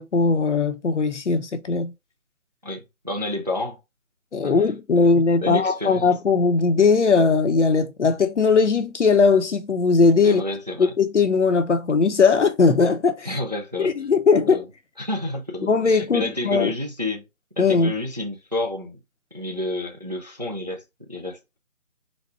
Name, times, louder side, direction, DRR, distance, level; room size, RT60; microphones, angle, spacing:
voice 1, 0.0-1.9 4.3-10.4 10.8-13.3 13.8-14.6 15.6-16.7 17.6-17.9, left 4 dB, 55° left, 0.8 m, -19 dB
voice 2, 2.6-3.8 4.4-4.7 5.0-5.1 5.4-6.1 10.2-10.9 13.2-13.9 14.5-14.6 15.0-17.2 17.6-19.0 19.3-21.6, left 1 dB, 30° right, 0.5 m, -30 dB
4.1 x 2.2 x 4.5 m
figure-of-eight pair, 160°, 41 cm